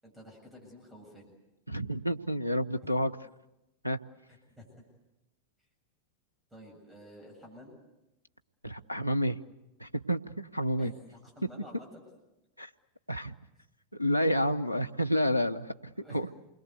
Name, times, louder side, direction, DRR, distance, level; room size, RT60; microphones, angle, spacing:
voice 1, 0.0-1.3 4.3-4.8 6.5-7.8 10.8-12.1 15.9-16.2, equal, 10° right, 1 dB, 7.6 m, -51 dB
voice 2, 1.7-3.1 3.8-4.0 8.6-9.4 9.8-10.9 12.6-12.7 13.1-13.3 13.9-16.3, equal, 90° right, 12 dB, 0.9 m, -29 dB
28.5 x 22.0 x 8.2 m, 0.96 s
figure-of-eight pair, 90°, 0 cm